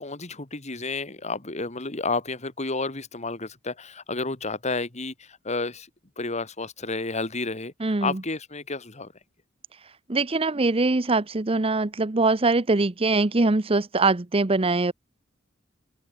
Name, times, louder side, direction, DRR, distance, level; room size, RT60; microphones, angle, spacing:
voice 1, 0.0-5.9 6.2-7.7 8.0-9.1, left 3 dB, 35° left, 2.6 m, -31 dB
voice 2, 7.8-8.2 10.1-14.9, right 3 dB, 30° right, 0.8 m, -22 dB
head